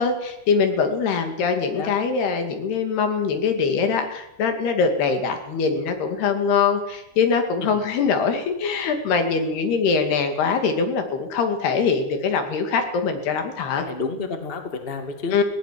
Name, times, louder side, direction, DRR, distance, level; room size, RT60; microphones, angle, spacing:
voice 1, 0.0-13.8 15.3-15.4, left 5 dB, 85° left, 6 dB, 4.4 m, -23 dB
voice 2, 13.8-15.4, left 4 dB, 20° left, 5 dB, 1.8 m, -30 dB
18.5 x 18.0 x 7.8 m, 0.83 s
omnidirectional pair, 4.5 m